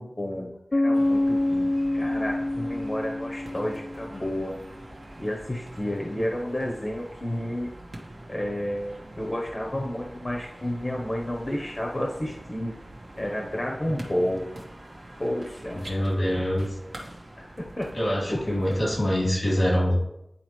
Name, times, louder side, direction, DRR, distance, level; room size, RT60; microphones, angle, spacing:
voice 1, 0.0-4.6 5.2-7.7 8.3-12.7 13.2-14.4 15.2-15.9 16.3-16.5 17.4-17.9 18.3-18.8, left 1 dB, 40° left, 0 dB, 0.9 m, -31 dB
Bass guitar, 0.7-4.4, left 1 dB, 60° left, 0.4 m, -26 dB
sound 1, 0.9-19.3, right 1 dB, 80° right, 1.1 m, -44 dB
voice 2, 15.7-16.8 17.9-19.9, equal, 90° left, -4 dB, 2.7 m, -25 dB
9.7 x 4.2 x 3.1 m, 0.85 s
wide cardioid pair, 60°, 0 cm